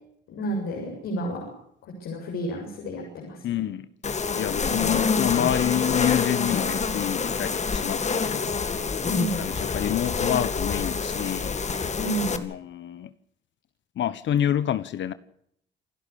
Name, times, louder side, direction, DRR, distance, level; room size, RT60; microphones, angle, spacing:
voice 1, 0.3-1.5 1.8-3.7 4.8-5.0 9.0-9.4 12.0-12.4, right 1 dB, 85° left, 7.4 m, -31 dB
voice 2, 3.4-8.5 9.4-11.6 12.4-13.1 14.0-15.1, left 11 dB, 70° left, 1.2 m, -28 dB
sound 1, 4.0-12.4, left 5 dB, 35° left, 2.2 m, -27 dB
28.5 x 12.0 x 8.5 m
cardioid pair, 90°, 20 cm